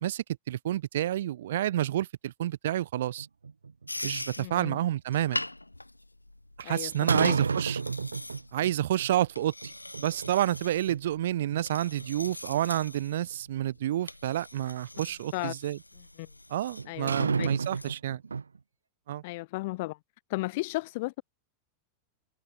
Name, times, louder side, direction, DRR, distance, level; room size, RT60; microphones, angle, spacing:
voice 1, 0.0-3.3 4.0-5.4 6.6-7.8 8.5-9.5 10.0-15.8 16.5-18.2 19.1-19.2, right 12 dB, 60° right, 1.2 m, -29 dB
sound 1, 3.2-4.5 7.1-8.7 9.0-9.1 9.6-10.6 10.9-11.0 11.5-11.6 12.0-13.4 14.9-15.0 16.8-18.6, right 5 dB, 75° right, 1.9 m, -30 dB
sound 2, 3.9-18.0, left 2 dB, 85° left, 3.6 m, -43 dB
voice 2, 4.4-4.8 6.6-7.4 15.3-15.5 16.2-16.3 16.9-17.5 19.2-20.0 20.3-21.2, left 22 dB, 50° left, 1.9 m, -34 dB
figure-of-eight pair, 90°, 0 cm